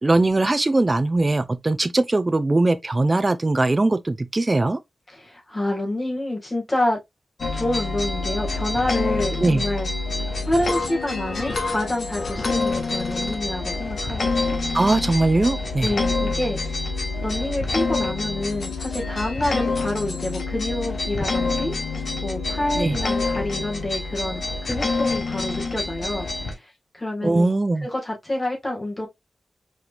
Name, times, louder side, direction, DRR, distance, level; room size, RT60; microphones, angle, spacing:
voice 1, 0.0-4.8 9.4-9.6 14.7-15.9 22.8-23.0 27.2-27.9, right 2 dB, 30° right, 0.6 m, -20 dB
voice 2, 5.1-7.0 7.5-14.8 15.8-16.9 17.2-21.7 22.2-27.5 27.8-29.1, left 1 dB, 20° left, 1.8 m, -28 dB
sound 1, 7.4-26.5, left 3 dB, 60° left, 1.2 m, -27 dB
4.9 x 3.3 x 2.5 m
wide cardioid pair, 105°, 0 cm